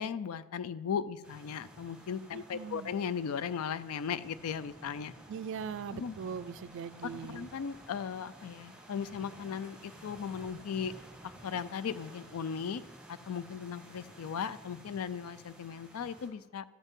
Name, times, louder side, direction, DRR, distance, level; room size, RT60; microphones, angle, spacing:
voice 1, 0.0-5.1 5.9-6.2 7.3-10.9 11.2-12.8 13.1-16.6, left 7 dB, 80° left, 16 dB, 0.4 m, -37 dB
sound 1, 1.2-16.3, right 1 dB, 5° right, 1.6 m, -53 dB
voice 2, 2.3-2.9 5.3-7.6, right 6 dB, 60° right, 16 dB, 0.3 m, -41 dB
12.0 x 8.1 x 3.7 m, 1.2 s
head